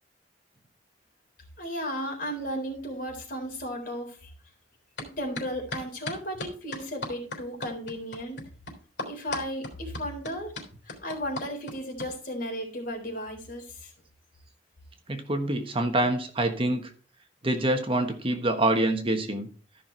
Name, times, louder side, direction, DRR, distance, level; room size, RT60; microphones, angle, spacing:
voice 1, 1.6-4.3 5.2-8.4 9.1-10.5 10.9-13.9, equal, 50° left, 2 dB, 3.9 m, -34 dB
sound 1, 5.0-5.1 5.3-12.1, left 2 dB, 70° left, 3.6 m, -36 dB
voice 2, 15.1-16.9 17.4-19.5, right 1 dB, 30° right, 6 dB, 1.3 m, -26 dB
13.5 x 5.9 x 4.5 m, 0.40 s
head